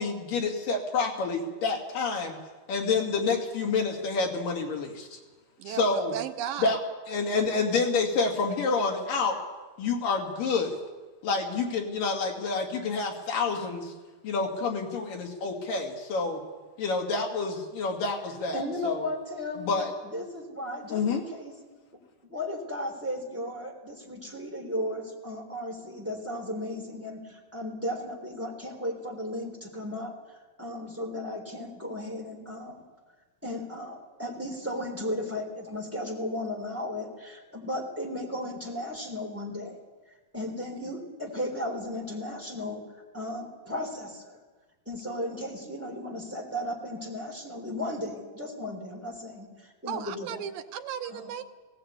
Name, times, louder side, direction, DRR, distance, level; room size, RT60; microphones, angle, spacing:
voice 1, 0.0-2.4 2.7-5.2 5.7-6.2 6.6-6.8 7.1-9.4 9.8-10.8 11.2-13.9 14.2-16.4 16.8-19.1 19.6-19.9 20.9-21.2, left 4 dB, 75° left, 1 dB, 4.2 m, -28 dB
voice 2, 5.6-6.8 49.9-51.4, right 10 dB, 85° right, 8 dB, 2.6 m, -35 dB
voice 3, 18.5-19.7 20.0-21.5 22.2-30.1 30.6-32.8 33.4-39.8 40.3-42.8 43.1-44.4 44.8-50.5 51.1-51.4, left 1 dB, 5° right, 1 dB, 3.2 m, -35 dB
18.5 x 18.0 x 8.4 m, 1.3 s
omnidirectional pair, 4.0 m